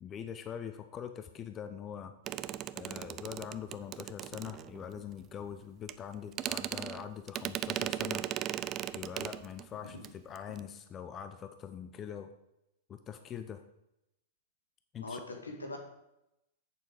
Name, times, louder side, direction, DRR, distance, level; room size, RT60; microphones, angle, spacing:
voice 1, 0.0-2.1 2.7-8.3 8.9-12.3 12.9-13.6 14.9-15.2, left 8 dB, 30° left, 9 dB, 0.7 m, -43 dB
sound 1, 2.3-5.0 5.9-6.0 6.3-9.7 10.0-10.1 10.4-10.6, right 12 dB, 35° right, 0.4 m, -37 dB
voice 2, 15.0-15.8, left 2 dB, 85° left, 3 dB, 1.8 m, -42 dB
8.2 x 7.0 x 5.0 m, 0.85 s
figure-of-eight pair, 100°, 0 cm